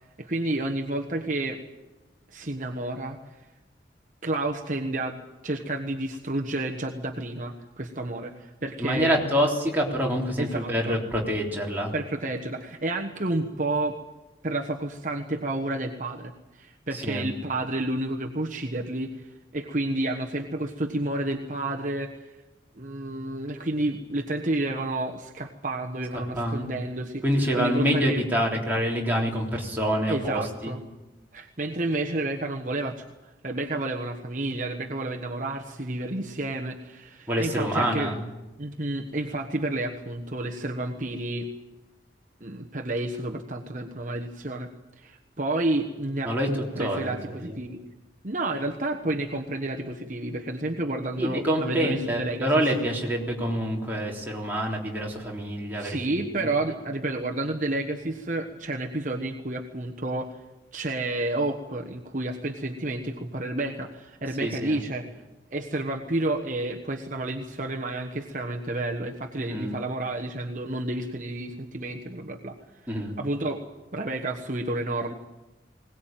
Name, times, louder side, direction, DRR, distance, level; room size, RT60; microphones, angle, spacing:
voice 1, 0.2-1.6 2.3-3.2 4.2-9.1 10.4-11.0 11.9-14.0 14.4-22.2 22.8-28.2 30.1-30.8 31.3-38.1 38.6-41.5 42.4-44.7 45.0-47.8 48.2-52.7 55.7-60.4 60.7-65.1 65.5-72.6 73.0-73.6 73.9-75.1, right 2 dB, 45° right, 2 dB, 1.3 m, -30 dB
voice 2, 8.8-11.9 16.9-17.3 26.3-26.7 27.2-30.7 37.3-38.2 46.2-46.5 46.8-47.6 51.2-56.0 56.4-56.5 64.4-64.8 69.4-69.8 72.9-73.1, equal, 10° right, -3 dB, 3.7 m, -26 dB
21.0 x 19.0 x 9.1 m, 1.1 s
head